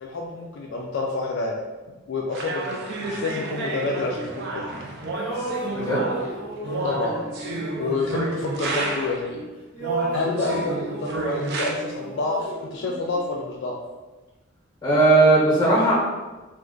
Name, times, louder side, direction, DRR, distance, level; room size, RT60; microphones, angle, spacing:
voice 1, 0.0-1.5 2.1-4.7 6.8-7.4 7.8-9.4 10.1-13.8, left 3 dB, 60° left, -1 dB, 0.3 m, -28 dB
sound 1, 2.3-9.3 9.8-11.7, right 2 dB, 55° right, 0.4 m, -30 dB
sound 2, 3.4-4.8 5.1-9.5 9.7-13.6, right 2 dB, 10° right, 0.9 m, -35 dB
voice 2, 5.7-6.0 14.8-15.9, right 2 dB, 20° left, -7 dB, 1.1 m, -17 dB
2.4 x 2.4 x 3.7 m, 1.2 s
head